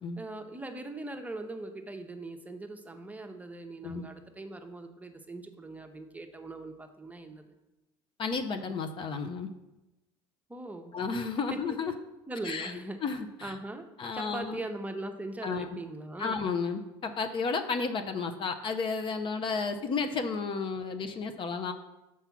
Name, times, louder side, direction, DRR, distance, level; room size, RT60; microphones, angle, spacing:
voice 1, 0.2-7.4 10.5-10.9 11.5-11.8 12.3-13.0 13.4-13.9 14.1-16.4, right 2 dB, 10° right, 5 dB, 0.8 m, -40 dB
voice 2, 8.2-9.5 10.9-11.9 12.4-12.7 13.0-13.5 14.0-14.6 15.4-15.7 16.2-21.7, left 4 dB, 40° left, 7 dB, 0.7 m, -32 dB
5.8 x 4.6 x 5.8 m, 0.97 s
hypercardioid pair, 80°, 13 cm